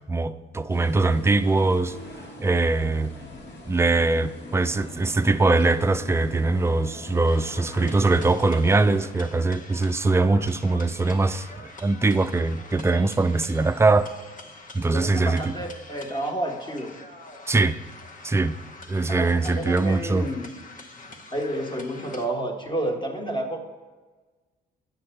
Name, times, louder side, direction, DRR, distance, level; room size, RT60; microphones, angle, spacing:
voice 1, 0.1-1.9 2.4-3.1 3.7-14.1 14.7-15.5 17.5-17.8 18.2-18.6 18.9-20.3, right 3 dB, 15° right, 0.3 m, -22 dB
sound 1, 0.7-9.1, left 1 dB, 65° left, 1.6 m, -42 dB
sound 2, 7.3-22.3, left 3 dB, 40° left, 0.9 m, -45 dB
voice 2, 14.8-16.9 19.1-20.5 21.1-23.6, right 1 dB, 25° left, 1.3 m, -30 dB
9.4 x 6.3 x 4.4 m
cardioid pair, 90°, 20 cm